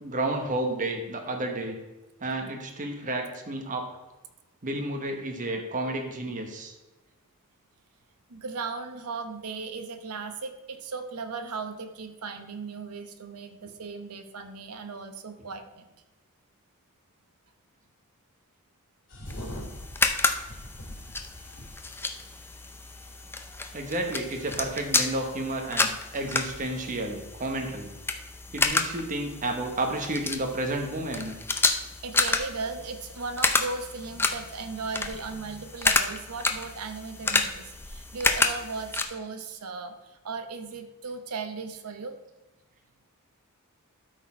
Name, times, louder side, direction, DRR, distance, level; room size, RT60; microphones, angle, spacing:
voice 1, 0.0-1.8 2.2-3.9 4.6-6.7 23.7-27.9 28.5-31.3, right 2 dB, 35° right, 3 dB, 1.1 m, -31 dB
voice 2, 8.3-15.9 32.0-42.2, right 4 dB, 80° right, 7 dB, 0.9 m, -37 dB
sound 1, 19.1-27.1, equal, 80° left, 2.7 m, -46 dB
sound 2, 19.3-39.0, left 3 dB, 10° left, 0.5 m, -30 dB
12.5 x 4.2 x 4.3 m, 1.1 s
head